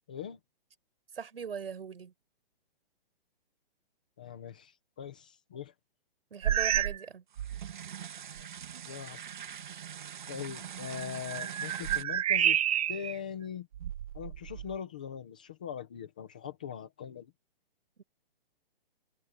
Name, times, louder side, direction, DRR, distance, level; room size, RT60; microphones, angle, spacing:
voice 1, 0.1-0.4 4.2-5.7 8.4-8.5 8.9-9.3 10.3-12.6 12.9-13.7 14.1-17.3, left 8 dB, 10° left, 0.5 m, -41 dB
voice 2, 1.1-2.1 6.3-7.2 18.0-18.1, right 6 dB, 80° right, 6.7 m, -40 dB
sound 1, 6.4-7.1 7.4-7.7 8.4-8.5 10.9-13.2 13.7-14.8, right 10 dB, 40° right, 1.8 m, -30 dB
sound 2, 7.3-12.0, right 9 dB, 55° right, 1.9 m, -43 dB
hypercardioid pair, 180°, 29 cm